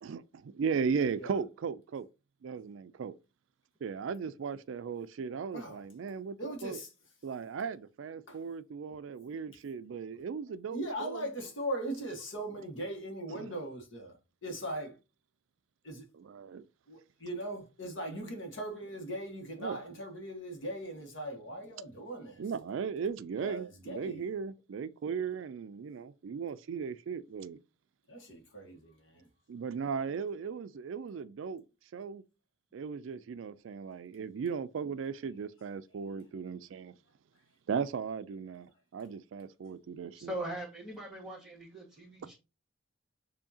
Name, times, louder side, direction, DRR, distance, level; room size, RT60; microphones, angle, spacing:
voice 1, 0.0-2.1 2.4-3.2 3.8-6.8 7.2-11.3 13.3-13.5 16.1-16.7 19.6-20.0 22.4-27.6 29.5-31.6 31.9-32.2 32.7-37.0 37.7-40.3, right 6 dB, 70° right, 0.3 m, -37 dB
voice 2, 6.4-6.9 8.3-8.4 10.7-14.1 14.4-14.9 15.8-16.0 16.9-22.4 23.4-24.2 28.1-29.2, right 1 dB, 65° left, 1.4 m, -39 dB
voice 3, 40.1-42.3, right 1 dB, ahead, 1.9 m, -41 dB
7.1 x 2.8 x 2.7 m
head